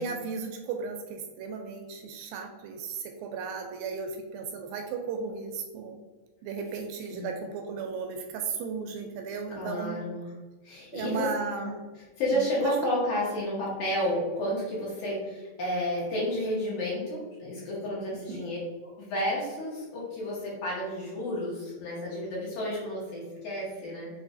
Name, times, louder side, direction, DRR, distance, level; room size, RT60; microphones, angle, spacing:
voice 1, 0.0-6.0 6.4-10.0 10.9-11.8 12.3-12.5 12.8-12.9 18.1-18.6, right 5 dB, 80° right, 3 dB, 2.2 m, -35 dB
voice 2, 9.5-10.3 10.6-11.3 11.6-11.7 12.2-18.6 18.8-24.1, left 1 dB, 65° left, -6 dB, 2.2 m, -31 dB
6.2 x 3.0 x 2.5 m, 1.3 s
omnidirectional pair, 4.3 m